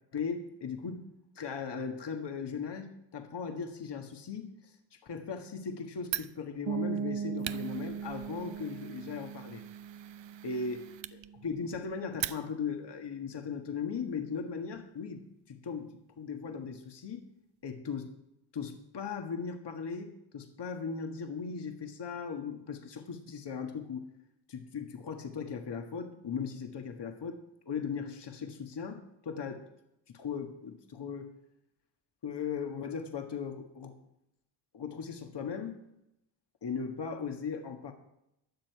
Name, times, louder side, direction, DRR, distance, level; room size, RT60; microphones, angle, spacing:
voice 1, 0.1-1.0 1.3-9.6 10.4-17.2 17.6-18.1 18.5-24.1 24.5-27.4 27.6-29.7 30.1-31.3 32.2-33.9 34.7-35.8 36.6-37.9, left 6 dB, 60° left, 4 dB, 1.7 m, -38 dB
Fire, 6.0-12.8, right 12 dB, 70° right, 0.6 m, -43 dB
sound 1, 6.7-12.3, right 7 dB, 90° right, 1.1 m, -39 dB
15.5 x 10.0 x 4.7 m, 0.82 s
cardioid pair, 90°, 46 cm